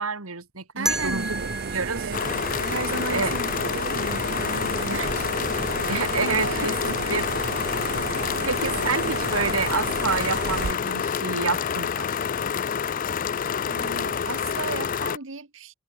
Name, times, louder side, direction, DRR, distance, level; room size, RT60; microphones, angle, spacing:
voice 1, 0.0-2.4 3.1-3.3 5.9-7.2 8.4-12.1, right 4 dB, 80° right, 2.5 m, -28 dB
voice 2, 0.7-2.2 2.6-5.3 5.6-5.7 6.2-7.2 13.7-15.7, right 3 dB, 60° right, 1.4 m, -35 dB
sound 1, 0.9-3.7, right 1 dB, ahead, 1.0 m, -33 dB
sound 2, 0.9-10.7, right 5 dB, 45° right, 0.5 m, -33 dB
sound 3, 2.1-15.2, left 7 dB, 40° left, 0.4 m, -28 dB
head